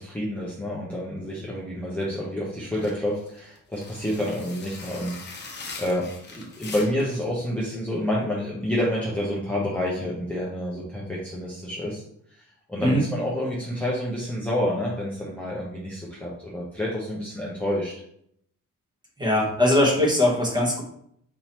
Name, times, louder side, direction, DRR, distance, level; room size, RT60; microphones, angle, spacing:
voice 1, 0.0-12.0 12.3-12.4 12.7-17.9, left 1 dB, 5° left, -7 dB, 0.8 m, -29 dB
sound 1, 2.7-7.2, left 3 dB, 30° left, 0.8 m, -41 dB
voice 2, 19.2-20.8, left 1 dB, 15° right, -2 dB, 1.1 m, -20 dB
4.4 x 3.7 x 2.9 m, 0.70 s
cardioid pair, 155°, 33 cm